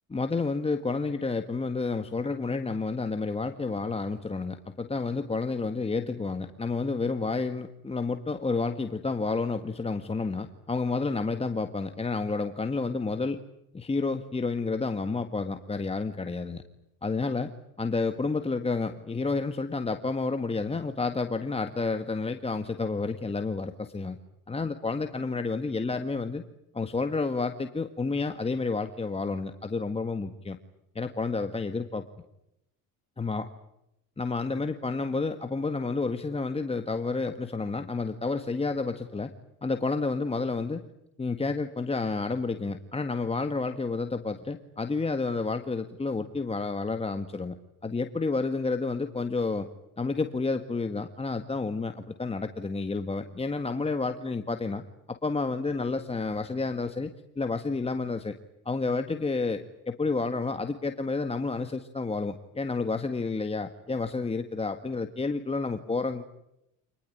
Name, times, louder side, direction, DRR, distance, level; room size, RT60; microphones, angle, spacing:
voice 1, 0.1-13.4 13.7-16.6 17.0-17.5 17.8-24.2 24.5-26.4 26.7-30.6 30.9-32.0 33.2-33.5 34.2-39.3 39.6-40.8 41.2-47.5 47.8-49.7 50.0-54.8 55.1-57.1 57.3-58.3 58.6-66.4, left 3 dB, 20° left, 7 dB, 1.6 m, -30 dB
26.5 x 20.5 x 10.0 m, 0.84 s
cardioid pair, 100°, 33 cm